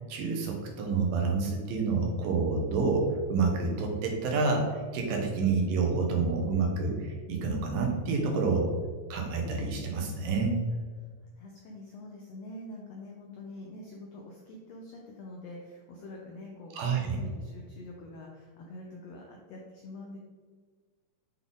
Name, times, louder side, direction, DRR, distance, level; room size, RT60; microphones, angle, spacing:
voice 1, 0.1-4.7 4.9-8.7 9.1-10.6 16.7-17.2, right 4 dB, 85° right, 1 dB, 2.9 m, -28 dB
voice 2, 11.4-20.2, left 2 dB, 85° left, -1 dB, 1.4 m, -45 dB
7.8 x 4.0 x 3.6 m, 1.5 s
omnidirectional pair, 4.0 m